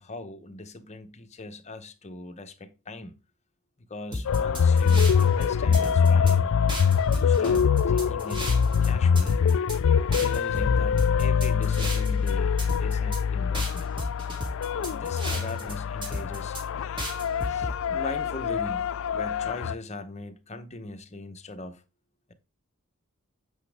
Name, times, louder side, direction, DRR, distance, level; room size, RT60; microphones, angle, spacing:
voice 1, 0.0-3.1 3.8-6.6 7.1-8.5 8.8-9.4 10.1-13.9 14.7-16.6 17.5-21.8, left 2 dB, 30° left, 1.0 m, -40 dB
sound 1, 4.1-5.4 5.7-6.3 6.7-8.9 9.2-9.8 10.1-12.3 12.6-13.2 13.5-15.7 16.0-16.6 17.0-17.7, equal, 25° right, 2.9 m, -33 dB
sound 2, 4.3-19.7, left 6 dB, 65° left, 0.4 m, -24 dB
8.4 x 5.9 x 3.5 m
head